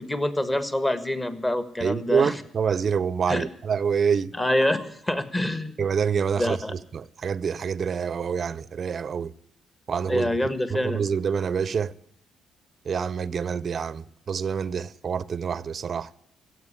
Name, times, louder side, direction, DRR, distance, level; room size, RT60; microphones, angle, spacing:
voice 1, 0.0-2.4 3.3-3.4 4.3-5.8 6.4-6.7 10.1-11.0, left 1 dB, 15° left, 1.4 m, -26 dB
voice 2, 1.8-4.3 5.8-6.6 6.9-9.3 9.9-10.3 10.7-11.9 12.9-16.1, right 6 dB, 50° right, 0.5 m, -26 dB
15.5 x 8.1 x 9.8 m
cardioid pair, 90°, 0 cm